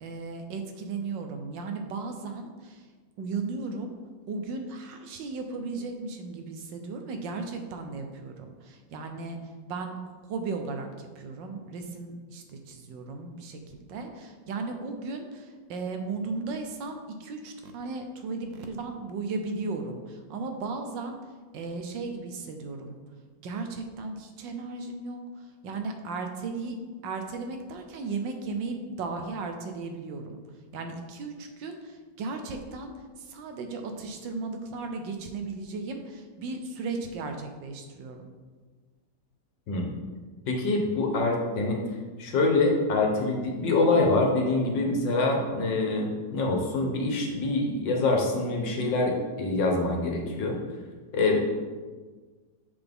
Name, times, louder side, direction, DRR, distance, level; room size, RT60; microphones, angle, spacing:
voice 1, 0.0-2.9 3.2-3.9 4.3-9.4 9.7-9.9 10.3-21.1 21.5-23.0 23.4-26.8 27.0-30.4 30.7-38.3, right 3 dB, 90° right, 5 dB, 1.5 m, -36 dB
voice 2, 40.5-41.8 42.2-50.6 51.1-51.4, left 2 dB, 80° left, 1 dB, 1.8 m, -25 dB
6.9 x 6.0 x 3.6 m, 1.4 s
omnidirectional pair, 1.9 m